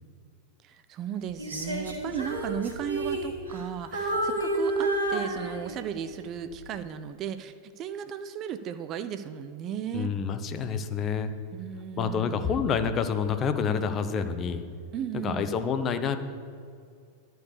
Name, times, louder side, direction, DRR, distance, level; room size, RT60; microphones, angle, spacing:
voice 1, 0.6-10.1 11.5-12.6 14.9-15.6, right 9 dB, 35° right, 10 dB, 0.5 m, -35 dB
Female singing, 1.4-3.7 3.9-6.0 6.5-6.7, right 1 dB, 75° right, 1.6 m, -30 dB
voice 2, 9.9-11.3 12.0-14.7 15.1-16.2, left 6 dB, 30° left, 9 dB, 0.7 m, -28 dB
11.5 x 4.7 x 8.2 m, 2.3 s
figure-of-eight pair, 90°, 0 cm